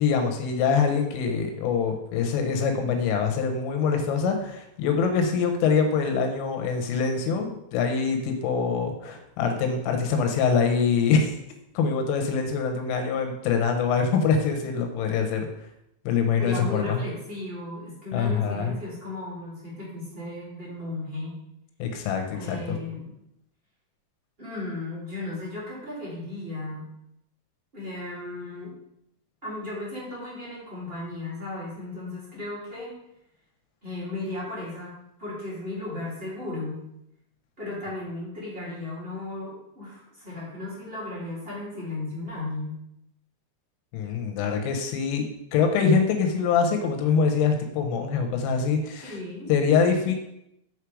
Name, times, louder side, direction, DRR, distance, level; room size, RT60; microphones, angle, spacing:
voice 1, 0.0-11.3 11.8-15.5 16.1-17.0 18.1-18.7 21.8-22.8 43.9-45.2 45.5-49.1 49.5-50.1, left 5 dB, 90° left, 4 dB, 3.5 m, -24 dB
voice 2, 16.4-21.3 22.3-23.1 24.4-26.9 27.7-28.7 29.4-32.9 33.8-36.8 37.6-42.8 49.0-49.5, left 2 dB, 30° right, -7 dB, 1.0 m, -35 dB
6.6 x 4.9 x 4.7 m, 0.79 s
omnidirectional pair, 5.6 m